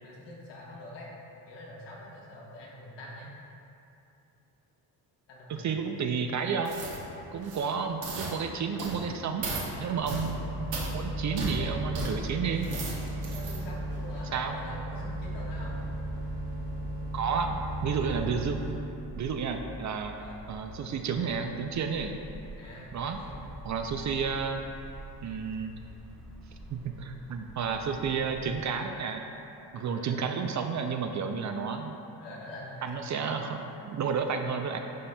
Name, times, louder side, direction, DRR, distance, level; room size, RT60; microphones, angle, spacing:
voice 1, 0.0-1.1 1.5-3.3 5.3-5.7 11.3-11.7 13.3-15.8 20.2-20.4 22.6-23.5 27.9-28.2 29.7-30.2 32.2-33.1, left 1 dB, 70° left, -5 dB, 1.5 m, -45 dB
voice 2, 5.5-6.8 7.3-9.5 9.8-10.4 10.9-12.7 14.3-14.5 17.1-18.6 19.2-20.1 20.5-22.1 22.9-23.2 23.6-24.6 25.2-25.7 26.7-29.2 29.7-32.0 32.8-34.8, right 6 dB, 45° right, 5 dB, 0.4 m, -31 dB
sound 1, 6.6-7.0 7.4-7.7 8.0-8.3 8.8-9.0 9.4-9.7 10.0-10.3 10.7-10.9 11.4-11.5 11.9-12.1 12.5-13.6 14.0-14.2, right 3 dB, 85° right, 1.3 m, -36 dB
sound 2, 10.0-18.8, right 1 dB, 60° right, 1.2 m, -35 dB
sound 3, 12.6-28.6, equal, ahead, 1.0 m, -48 dB
11.5 x 4.1 x 2.2 m, 2.8 s
cardioid pair, 95°, 43 cm